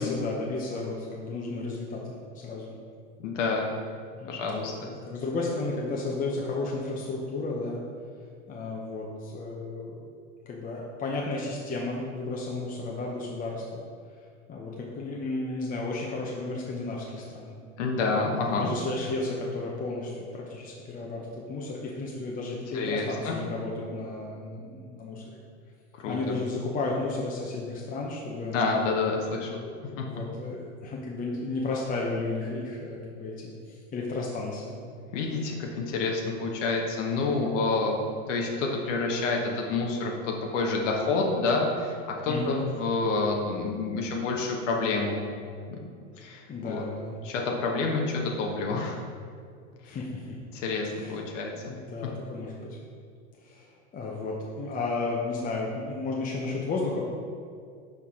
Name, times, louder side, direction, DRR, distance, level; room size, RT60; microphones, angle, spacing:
voice 1, 0.0-2.2 2.4-2.7 4.2-4.7 5.0-7.8 8.5-9.9 10.5-13.8 14.5-17.5 18.3-25.4 26.1-28.6 29.3-34.8 42.3-42.6 46.5-47.2 49.8-50.4 50.9-51.2 51.7-52.8 53.4-57.1, left 3 dB, 20° left, -2 dB, 0.7 m, -33 dB
voice 2, 3.2-3.7 4.3-4.7 17.8-18.7 22.7-23.4 25.9-26.4 28.5-29.7 30.0-30.1 35.1-37.9 38.3-42.0 42.2-45.2 45.7-45.8 46.2-46.8 47.2-49.0 49.9-50.0 50.5-51.5, left 3 dB, 75° left, 0 dB, 1.0 m, -28 dB
6.5 x 4.2 x 3.6 m, 2.2 s
hypercardioid pair, 115°, 37 cm